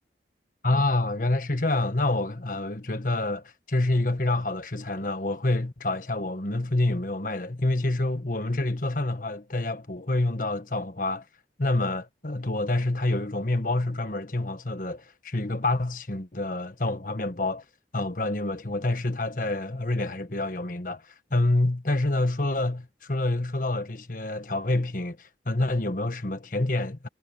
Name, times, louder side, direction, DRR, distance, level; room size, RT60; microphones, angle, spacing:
voice 1, 0.6-11.2 11.6-17.6 17.9-27.1, left 2 dB, 50° left, 1.5 m, -27 dB
head